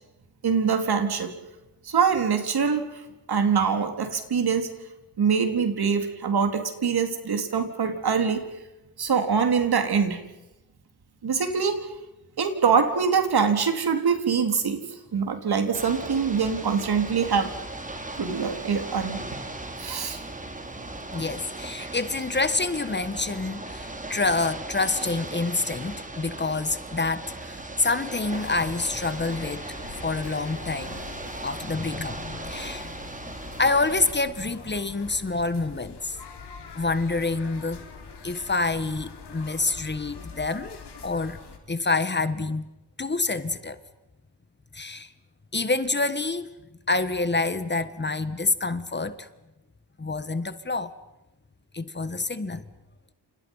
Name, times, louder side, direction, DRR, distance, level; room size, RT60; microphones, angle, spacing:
voice 1, 0.4-1.3 1.8-2.9 3.3-4.7 5.2-8.4 9.0-10.2 11.2-11.8 12.4-14.8 15.1-17.5 18.1-19.2 19.8-20.2 21.8-21.9, right 6 dB, 65° right, 6 dB, 4.1 m, -24 dB
Ocean / Boat Water vehicle, 15.7-34.1, right 2 dB, 20° right, 3.5 m, -38 dB
voice 2, 21.1-29.8 30.0-31.0 31.4-33.0 33.6-36.2 36.7-37.8 38.2-41.4 41.7-42.7 43.0-43.8 44.7-45.1 45.5-46.5 46.9-49.3 50.0-50.9 51.7-52.6, left 3 dB, 25° left, 12 dB, 1.5 m, -27 dB
sound 1, 28.3-41.6, left 5 dB, 75° left, 5.0 m, -43 dB
30.0 x 28.5 x 5.7 m, 0.96 s
wide cardioid pair, 120°, 41 cm